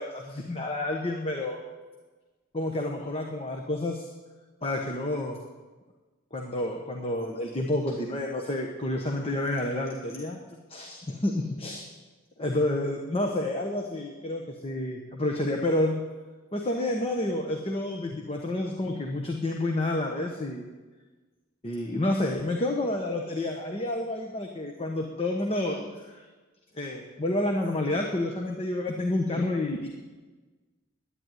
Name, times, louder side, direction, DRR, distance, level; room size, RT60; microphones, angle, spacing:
voice 1, 0.0-1.6 2.5-4.1 4.6-5.4 6.3-10.4 10.7-11.9 12.4-16.0 16.5-20.6 21.6-26.3 26.7-29.9, left 1 dB, 25° left, 2 dB, 1.0 m, -29 dB
11.0 x 9.8 x 9.1 m, 1.3 s
head